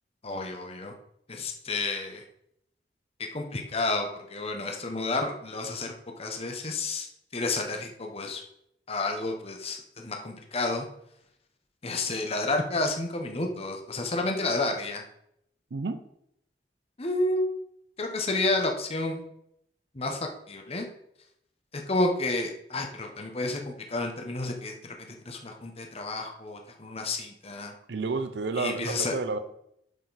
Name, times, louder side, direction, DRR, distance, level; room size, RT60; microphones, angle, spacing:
voice 1, 0.2-0.9 1.3-2.2 3.2-8.4 8.9-10.9 11.8-15.0 17.0-17.4 18.0-19.2 19.9-20.9 21.7-27.7 28.6-29.1, left 2 dB, 35° left, 3 dB, 1.1 m, -30 dB
voice 2, 27.9-29.4, right 3 dB, 70° right, 10 dB, 0.6 m, -30 dB
8.2 x 6.6 x 4.1 m, 0.75 s
head